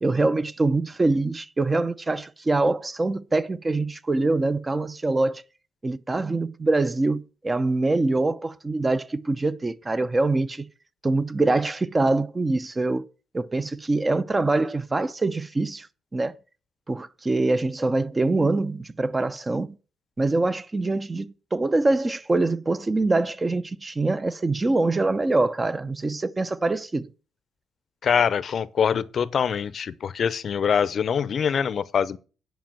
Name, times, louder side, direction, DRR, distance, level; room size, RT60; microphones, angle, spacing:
voice 1, 0.0-5.4 5.8-10.7 11.0-13.0 13.3-15.9 16.1-16.3 16.9-19.7 20.2-27.1, right 2 dB, 25° right, 0.7 m, -24 dB
voice 2, 28.0-32.2, left 7 dB, 55° left, 0.6 m, -24 dB
10.5 x 5.2 x 7.4 m
cardioid pair, 90°, 0 cm